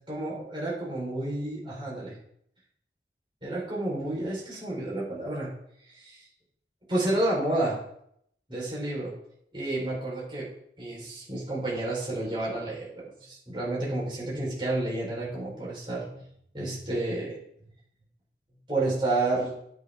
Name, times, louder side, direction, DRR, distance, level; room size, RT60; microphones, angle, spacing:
voice 1, 0.1-2.2 3.4-5.5 5.9-6.3 6.9-7.8 8.5-9.1 9.5-10.5 10.8-16.2 16.5-17.4 18.7-19.5, right 2 dB, 30° right, -5 dB, 4.0 m, -30 dB
9.9 x 9.0 x 3.6 m, 0.70 s
head